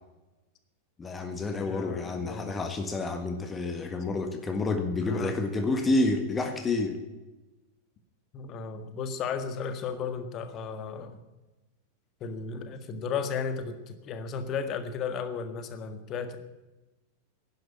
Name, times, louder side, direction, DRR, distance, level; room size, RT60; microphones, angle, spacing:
voice 1, 1.0-7.0, left 2 dB, 15° left, 6 dB, 1.6 m, -29 dB
voice 2, 1.6-2.5 5.1-5.3 8.3-11.2 12.2-16.4, left 6 dB, 35° left, 9 dB, 1.7 m, -34 dB
11.5 x 10.5 x 9.8 m, 1.1 s
figure-of-eight pair, 90°, 0 cm